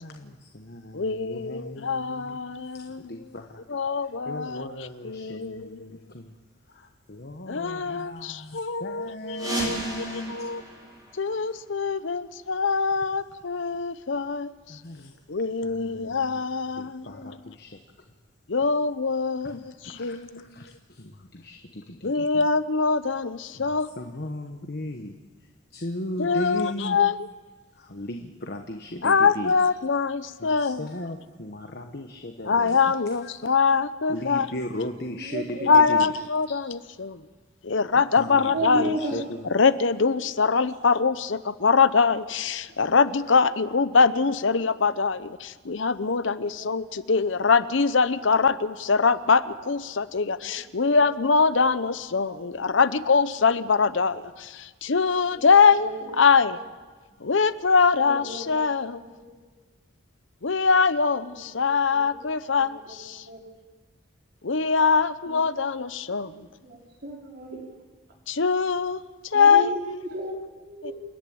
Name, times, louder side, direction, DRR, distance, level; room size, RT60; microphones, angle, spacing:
voice 1, 0.0-2.4 2.7-3.6 4.3-6.3 6.7-10.3 14.7-15.1 15.6-16.4 16.8-17.7 19.6-22.4 23.6-23.7 24.0-25.1 25.7-27.0 27.8-29.5 30.4-33.0 33.2-33.5 34.1-35.4 35.7-36.1 36.5-36.6 38.1-39.2, left 1 dB, 55° left, 4 dB, 1.2 m, -37 dB
voice 2, 0.9-3.1 3.7-6.0 7.5-10.6 11.1-14.8 15.3-17.5 18.5-20.4 22.0-23.9 26.2-27.2 29.0-30.9 32.4-34.5 35.7-37.2 37.6-38.9 39.5-55.9 56.2-56.6 57.2-59.0 60.4-63.2 64.4-66.5 68.3-69.7 70.8-70.9, left 5 dB, 70° left, 14 dB, 0.8 m, -23 dB
sound 1, 9.3-11.9, right 2 dB, 20° right, 5.4 m, -34 dB
voice 3, 35.1-35.7 38.3-39.4 40.0-40.3 42.2-42.3 42.7-43.1 43.8-44.2 44.5-44.7 46.3-47.0 49.6-50.0 50.4-51.4 52.2-52.6 53.4-53.6 54.9-56.1 56.5-56.6 57.9-59.6 61.3-62.3 62.6-63.6 64.7-64.8 65.2-65.5 66.1-67.8 69.3-70.9, right 1 dB, 55° right, -1 dB, 4.7 m, -37 dB
28.5 x 11.0 x 8.7 m, 1.4 s
head